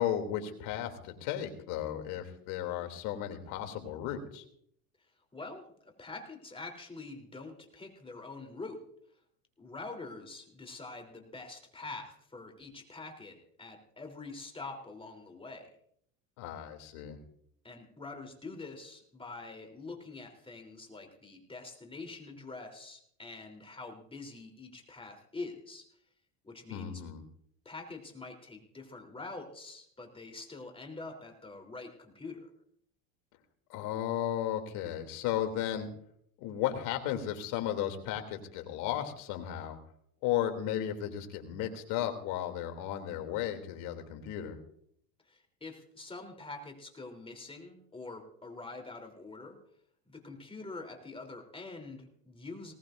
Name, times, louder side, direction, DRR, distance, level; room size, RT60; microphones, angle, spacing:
voice 1, 0.0-4.4 16.4-17.2 26.7-27.2 33.7-35.9 36.4-39.8 40.2-44.6, left 11 dB, 65° left, 6 dB, 3.1 m, -34 dB
voice 2, 5.3-8.8 9.6-15.7 17.6-25.9 26.4-27.0 27.7-32.5 45.2-49.6 50.1-52.7, left 3 dB, 15° left, 3 dB, 3.6 m, -45 dB
20.5 x 18.5 x 2.6 m, 0.67 s
supercardioid pair, 115°, 42 cm